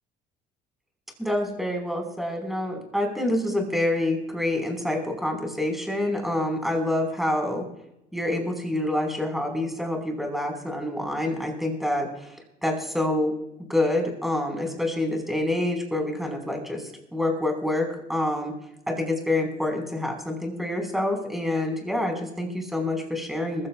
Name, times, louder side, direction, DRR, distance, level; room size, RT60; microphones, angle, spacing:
voice 1, 1.2-7.6 8.1-12.4 12.6-13.3 13.7-18.5 18.9-23.7, left 1 dB, ahead, 2 dB, 5.1 m, -27 dB
22.0 x 15.5 x 2.5 m, 0.85 s
cardioid pair, 110°, 17 cm